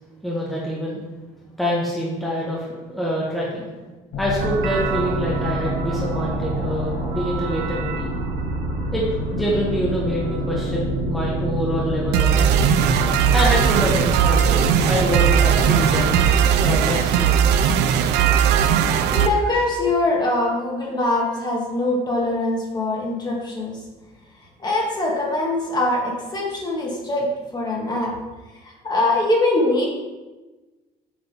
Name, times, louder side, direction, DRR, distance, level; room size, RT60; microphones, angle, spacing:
voice 1, 0.2-1.0 1.6-3.7 4.2-8.1 8.9-12.6 13.3-17.3, equal, ahead, -6 dB, 1.5 m, -26 dB
sound 1, 4.1-16.3, left 1 dB, 70° left, 1.3 m, -28 dB
sound 2, 4.4-19.3, right 8 dB, 85° right, 0.5 m, -21 dB
voice 2, 19.1-23.8 24.6-28.1 28.8-29.9, left 2 dB, 25° left, -2 dB, 2.0 m, -22 dB
7.3 x 4.0 x 5.1 m, 1.2 s
cardioid pair, 110°, 17 cm